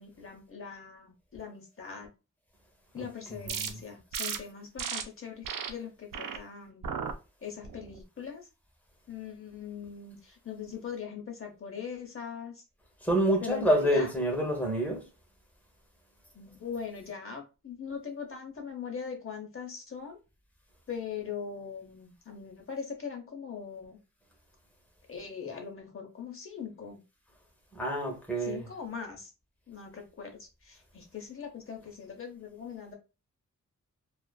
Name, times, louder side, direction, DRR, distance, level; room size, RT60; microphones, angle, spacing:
voice 1, 0.0-2.1 2.9-6.9 7.4-8.5 9.1-12.6 13.4-14.1 16.3-20.2 20.9-24.0 25.1-27.0 28.4-29.3 29.7-32.9, left 6 dB, 40° left, 0.7 m, -41 dB
voice 2, 3.0-3.8 13.0-15.0 27.7-28.6, right 1 dB, 5° left, 0.8 m, -28 dB
sound 1, 3.5-3.7 4.1-4.4 4.8-5.0 5.4-5.7 6.1-6.4 6.8-7.1 7.6-8.0, right 7 dB, 80° right, 0.5 m, -35 dB
2.4 x 2.4 x 2.2 m
wide cardioid pair, 125°, 32 cm